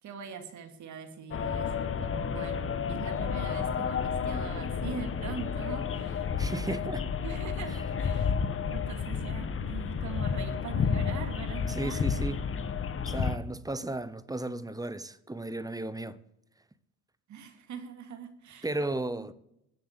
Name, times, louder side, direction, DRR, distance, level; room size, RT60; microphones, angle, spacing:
voice 1, 0.0-6.9 7.2-8.3 8.7-12.1 17.3-18.8 19.2-19.3, right 6 dB, 70° right, 2.5 m, -42 dB
sound 1, 1.3-13.4, left 6 dB, 45° left, 1.2 m, -31 dB
voice 2, 6.4-7.0 11.7-12.4 13.1-16.2 18.6-19.3, right 2 dB, 10° right, 0.9 m, -34 dB
13.5 x 7.8 x 8.9 m
cardioid pair, 90°, 30 cm